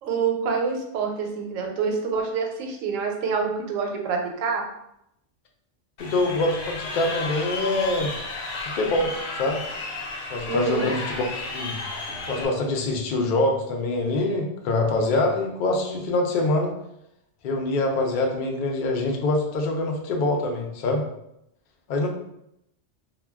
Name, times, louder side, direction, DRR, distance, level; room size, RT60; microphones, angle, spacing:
voice 1, 0.0-4.6 10.5-10.9, right 5 dB, 85° right, 2 dB, 1.0 m, -26 dB
Crowd, 6.0-12.5, left 3 dB, 80° left, 1.0 m, -33 dB
voice 2, 6.0-8.1 8.6-9.6 10.3-11.8 12.3-16.7 17.4-21.0 21.9-22.1, left 2 dB, 65° left, 1 dB, 0.5 m, -25 dB
2.2 x 2.2 x 3.4 m, 0.80 s
omnidirectional pair, 1.3 m